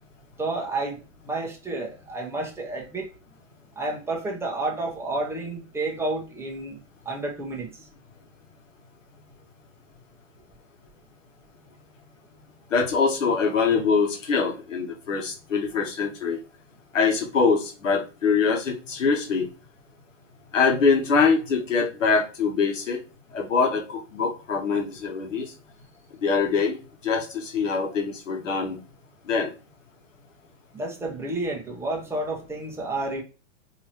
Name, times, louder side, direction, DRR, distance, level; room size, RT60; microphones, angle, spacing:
voice 1, 0.4-3.1 3.8-6.8 7.0-7.9 30.7-33.2, right 2 dB, 5° right, 0.9 m, -30 dB
voice 2, 12.7-16.4 16.9-19.5 20.5-23.0 23.3-25.5 26.2-26.8 27.0-28.8 29.3-29.5, left 5 dB, 85° left, 1.3 m, -23 dB
3.7 x 3.0 x 2.9 m
hypercardioid pair, 115°, 37 cm